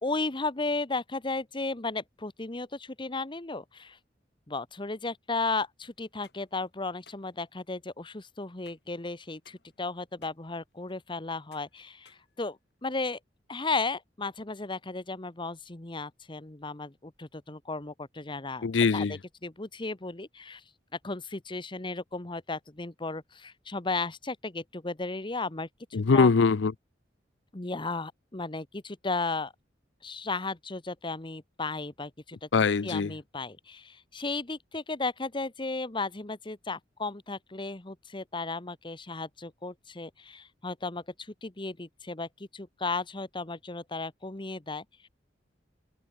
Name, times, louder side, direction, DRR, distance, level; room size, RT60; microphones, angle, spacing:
voice 1, 0.0-4.0 4.5-13.2 13.5-18.7 18.9-20.6 21.0-25.7 26.1-26.3 27.5-29.5 30.0-32.5 32.8-45.1, left 3 dB, 25° left, 1.2 m, -35 dB
sound 1, 6.1-13.0, left 6 dB, 65° left, 7.8 m, -63 dB
voice 2, 18.6-19.2 25.9-26.7 32.5-33.1, left 4 dB, 85° left, 0.6 m, -22 dB
head